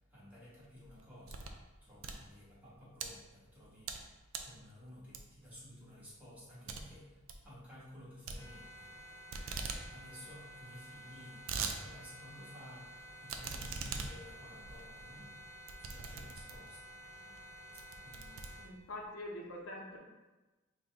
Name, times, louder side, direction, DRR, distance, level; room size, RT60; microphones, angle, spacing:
voice 1, 0.0-18.7, left 1 dB, 10° right, -9 dB, 1.4 m, -55 dB
sound 1, 0.7-1.6 1.9-3.1 3.6-4.0 4.3-4.6 5.1-5.5 5.9-6.0 6.3-6.4 6.7-6.8 7.1-7.4 8.3-9.0 9.3-9.8 10.2-10.3 10.4-10.5 11.1-11.8 12.2-12.3 13.3-16.8 17.3-17.5 17.8-19.0, right 5 dB, 70° right, 0.4 m, -42 dB
sound 2, 8.4-18.7, right 1 dB, 15° left, 0.6 m, -52 dB
voice 2, 18.6-20.0, left 1 dB, 65° left, 0 dB, 0.7 m, -44 dB
3.9 x 2.2 x 3.4 m, 1.1 s
head